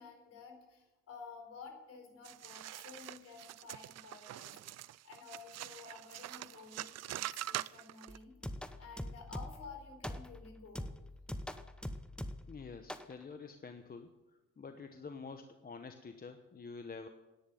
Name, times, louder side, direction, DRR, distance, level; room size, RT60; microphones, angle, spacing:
voice 1, 0.0-4.6 5.0-8.4 8.8-10.9, left 4 dB, 55° left, 3 dB, 4.5 m, -52 dB
sound 1, 2.3-8.2, right 14 dB, 60° right, 0.4 m, -44 dB
sound 2, 8.1-9.7 10.0-10.4 10.8-12.6 12.9-13.1, left 1 dB, 5° left, 0.9 m, -43 dB
voice 2, 12.5-14.1 14.6-17.1, left 4 dB, 30° left, 7 dB, 1.0 m, -48 dB
10.5 x 9.7 x 9.1 m, 1.1 s
cardioid pair, 90°, 30 cm